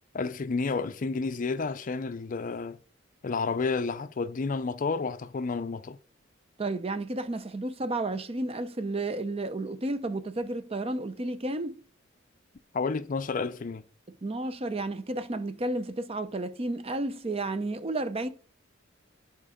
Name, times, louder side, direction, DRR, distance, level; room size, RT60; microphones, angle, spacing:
voice 1, 0.1-2.8 3.2-6.0 12.7-13.8, left 4 dB, 40° left, 0.4 m, -30 dB
voice 2, 6.6-11.8 14.1-18.3, right 2 dB, 30° right, 0.6 m, -32 dB
9.9 x 4.4 x 5.0 m
head